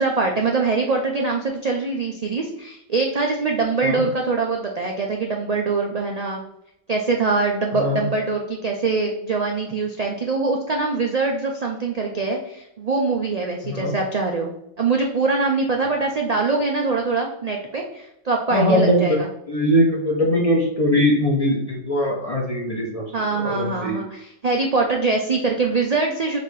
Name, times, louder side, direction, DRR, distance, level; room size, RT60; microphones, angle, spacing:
voice 1, 0.0-6.4 6.9-19.3 23.1-26.4, right 3 dB, 70° right, 1 dB, 0.3 m, -23 dB
voice 2, 13.6-13.9 18.5-19.2 19.5-23.1 23.4-24.0, equal, 35° left, -3 dB, 0.6 m, -21 dB
4.1 x 2.7 x 4.7 m, 0.81 s
omnidirectional pair, 1.4 m